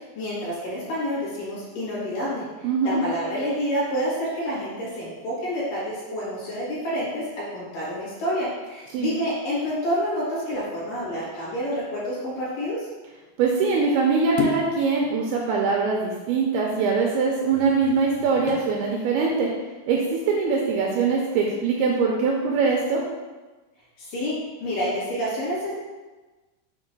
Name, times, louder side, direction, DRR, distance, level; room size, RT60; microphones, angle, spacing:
voice 1, 0.2-12.9 24.0-24.4 24.6-25.7, equal, 55° left, -8 dB, 2.9 m, -28 dB
voice 2, 2.6-3.0 8.9-9.1 13.4-19.5 19.9-23.0, right 4 dB, 85° right, -1 dB, 2.4 m, -22 dB
sound 1, 14.4-14.8 17.5-18.8 19.3-19.5, left 5 dB, 90° left, 2.1 m, -30 dB
7.2 x 2.9 x 5.3 m, 1.2 s
omnidirectional pair, 5.1 m